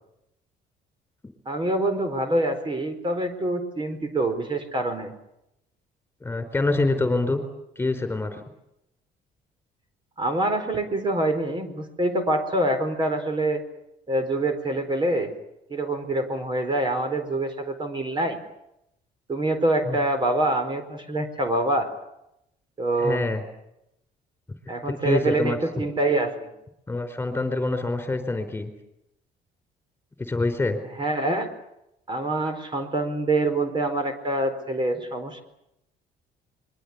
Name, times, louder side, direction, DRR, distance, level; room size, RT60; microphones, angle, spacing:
voice 1, 1.5-5.1 10.2-13.6 14.1-15.3 15.7-18.4 19.3-21.9 22.8-23.2 24.7-26.5 31.0-31.5 32.1-35.4, right 2 dB, 30° right, 7 dB, 4.4 m, -25 dB
voice 2, 6.2-7.4 7.8-8.4 19.9-20.0 23.0-23.4 24.9-25.9 26.9-28.7 30.2-30.8, left 2 dB, 15° left, 8 dB, 4.6 m, -26 dB
26.0 x 22.5 x 8.4 m, 0.84 s
cardioid pair, 110°, 17 cm